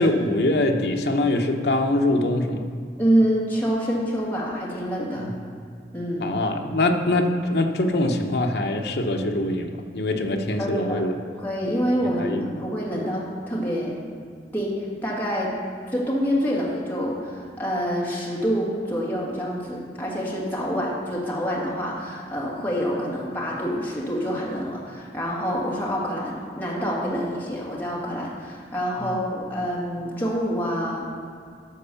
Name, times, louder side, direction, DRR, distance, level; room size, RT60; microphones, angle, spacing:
voice 1, 0.0-2.7 5.2-5.3 6.2-11.1 12.2-12.5 29.0-29.1, left 1 dB, 65° left, 3 dB, 0.9 m, -23 dB
voice 2, 3.0-5.3 5.9-6.3 10.6-11.0 11.4-13.9 14.5-15.5 15.9-31.0, equal, 10° left, -5 dB, 1.9 m, -26 dB
12.0 x 4.5 x 7.0 m, 2.2 s
head